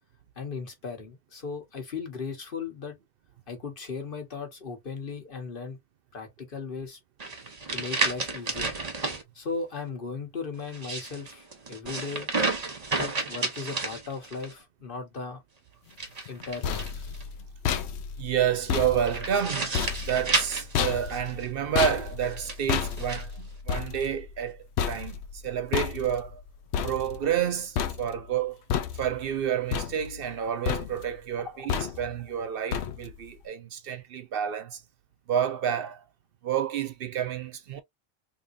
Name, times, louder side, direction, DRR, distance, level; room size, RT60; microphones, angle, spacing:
voice 1, 0.4-3.0 3.5-5.8 6.1-7.0 7.7-8.7 9.3-12.3 13.0-15.4 16.3-17.1 31.4-31.6, left 4 dB, 55° left, 1.3 m, -37 dB
sound 1, 7.2-9.2 10.6-14.5 15.9-17.2 19.1-21.5 22.2-23.2, right 3 dB, 40° right, 1.0 m, -31 dB
sound 2, 16.3-27.5 27.7-28.4 28.7-29.3 29.7-30.4 30.6-31.2 31.7-32.2 32.7-33.2, left 8 dB, 80° left, 0.8 m, -32 dB
voice 2, 18.2-19.7 20.0-26.4 26.8-28.6 29.0-34.8 35.3-36.0 36.4-37.8, right 9 dB, 65° right, 0.7 m, -29 dB
3.5 x 2.8 x 2.5 m
omnidirectional pair, 1.1 m